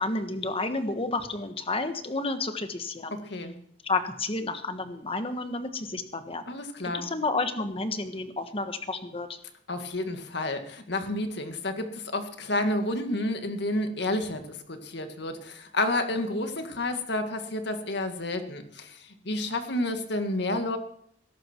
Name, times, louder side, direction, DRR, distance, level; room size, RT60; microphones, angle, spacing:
voice 1, 0.0-3.2 3.8-6.5 6.9-9.4, left 3 dB, 30° left, 8 dB, 1.4 m, -31 dB
voice 2, 3.1-3.6 6.5-7.1 9.7-20.8, left 1 dB, 65° left, 6 dB, 2.0 m, -30 dB
20.0 x 11.5 x 4.5 m, 0.67 s
head